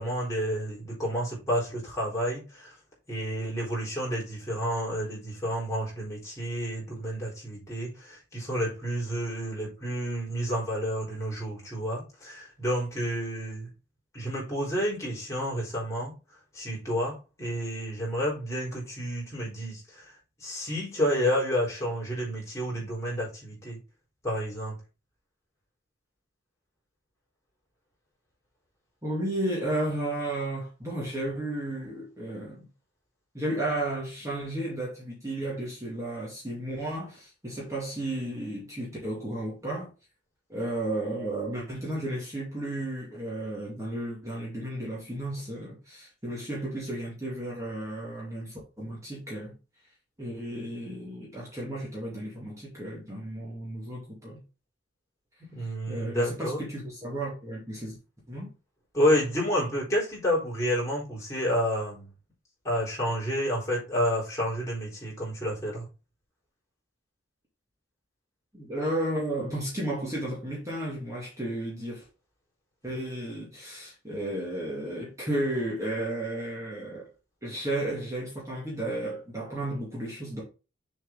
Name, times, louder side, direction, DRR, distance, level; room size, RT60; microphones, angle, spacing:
voice 1, 0.0-2.8 3.1-13.7 14.1-16.1 16.5-23.8 24.2-24.8 55.4-56.6 58.9-62.1 62.6-65.9, equal, 15° left, 4.1 m, -30 dB
voice 2, 29.0-32.7 33.3-39.9 40.5-49.5 50.2-54.4 55.6-57.9 58.3-58.5 68.5-72.1 72.8-77.1 77.4-80.4, right 1 dB, 15° right, 2.4 m, -33 dB
7.0 x 5.3 x 3.8 m
head